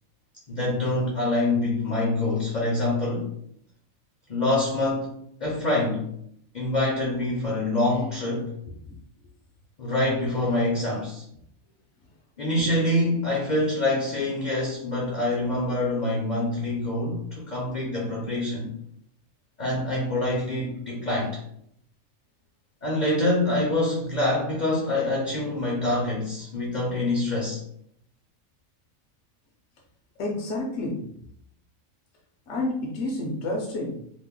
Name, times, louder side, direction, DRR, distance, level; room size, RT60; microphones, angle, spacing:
voice 1, 0.5-3.3 4.3-5.1 5.4-6.1 6.5-8.5 9.8-11.2 12.4-18.7 19.6-21.4 22.8-27.6, left 2 dB, 45° left, -2 dB, 0.6 m, -25 dB
voice 2, 30.2-31.1 32.5-34.0, left 2 dB, 70° left, -2 dB, 1.0 m, -30 dB
2.9 x 2.0 x 3.6 m, 0.69 s
omnidirectional pair, 1.4 m